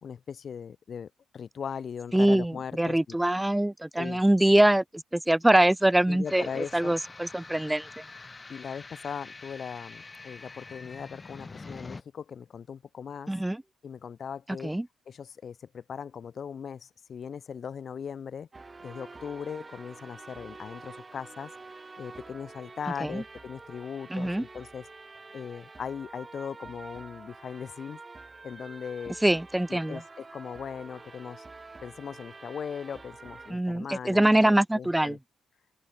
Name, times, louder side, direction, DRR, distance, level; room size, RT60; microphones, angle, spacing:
voice 1, 0.0-3.2 4.0-4.2 6.1-7.0 8.5-13.3 13.8-14.7 15.1-18.5 18.8-21.5 22.0-24.9 25.3-28.0 28.4-29.2 29.7-31.4 31.8-35.2, left 7 dB, 50° left, 2.5 m, -39 dB
voice 2, 2.1-8.0 13.3-13.6 14.6-14.9 23.0-23.2 24.1-24.4 29.2-30.0 33.5-35.2, right 1 dB, 10° right, 1.8 m, -24 dB
sound 1, 6.3-12.0, left 3 dB, 25° left, 7.3 m, -45 dB
sound 2, 18.5-33.5, right 3 dB, 25° right, 5.8 m, -47 dB
open air
cardioid pair, 90°, 0 cm